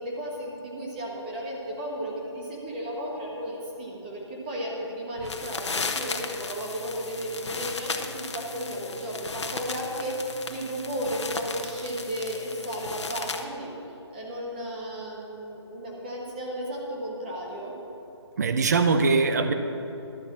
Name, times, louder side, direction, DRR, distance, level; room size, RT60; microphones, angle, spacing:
voice 1, 0.0-13.7 14.1-17.8, equal, 20° right, -3 dB, 1.3 m, -34 dB
sound 1, 5.2-13.4, left 4 dB, 75° left, 1.1 m, -35 dB
voice 2, 18.4-19.5, right 4 dB, 35° right, 8 dB, 0.6 m, -22 dB
11.5 x 6.8 x 7.3 m, 3.0 s
hypercardioid pair, 170°, 15 cm